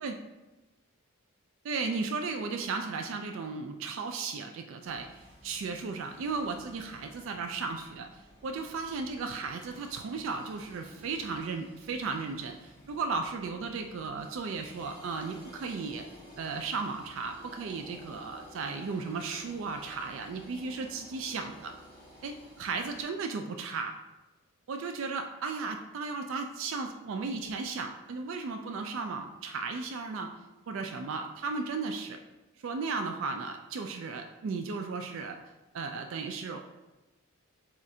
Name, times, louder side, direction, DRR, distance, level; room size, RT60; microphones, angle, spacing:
voice 1, 1.6-16.1 16.4-21.7 22.2-24.0 24.7-30.3 30.7-32.2 32.6-35.4 35.7-36.7, right 4 dB, 60° right, 5 dB, 0.3 m, -35 dB
sound 1, 4.8-23.0, equal, 25° left, 1.0 m, -54 dB
7.3 x 2.5 x 2.7 m, 1.1 s
head